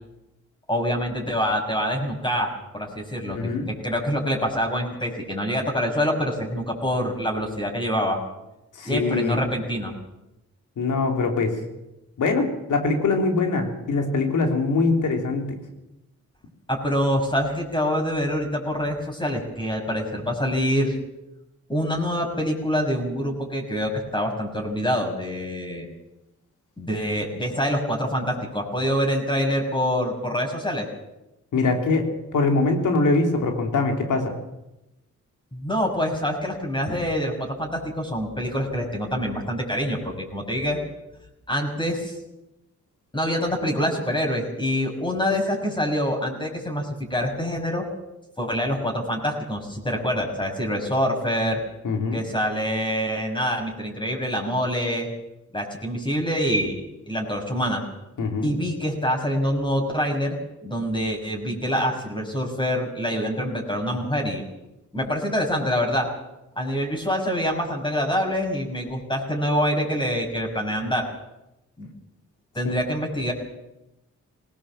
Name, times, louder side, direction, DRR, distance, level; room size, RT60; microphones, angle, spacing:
voice 1, 0.7-3.5 3.8-8.2 8.8-9.9 16.7-20.9 21.7-25.9 26.8-30.9 35.5-40.8 41.5-42.2 43.1-47.9 48.4-51.6 52.1-55.1 55.5-56.8 57.1-57.8 58.4-60.4 60.6-64.5 64.9-66.1 66.6-71.1 71.8-71.9 72.5-73.3, equal, 15° left, 1 dB, 6.1 m, -25 dB
voice 2, 3.3-3.7 8.8-9.4 10.8-11.6 12.2-15.4 31.5-32.0 32.3-34.3 51.8-52.2 58.2-58.6 72.6-72.7, left 3 dB, 80° left, 3 dB, 3.4 m, -23 dB
19.0 x 19.0 x 7.5 m, 0.93 s
cardioid pair, 60°, 30 cm